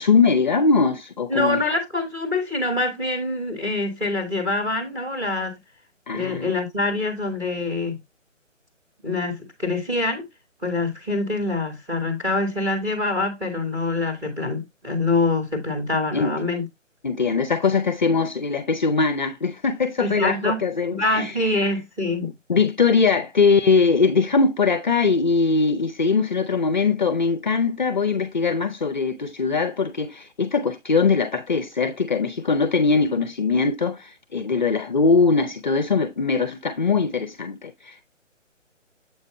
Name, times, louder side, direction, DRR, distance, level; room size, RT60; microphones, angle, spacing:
voice 1, 0.0-1.6 6.1-6.5 16.1-16.3 17.0-21.3 22.2-38.0, left 4 dB, 40° left, 0.6 m, -21 dB
voice 2, 1.3-5.6 6.1-8.0 9.0-10.2 10.6-16.7 20.0-20.6 20.9-22.3, left 2 dB, 5° right, 1.4 m, -25 dB
7.7 x 5.0 x 3.0 m
figure-of-eight pair, 150°, 38 cm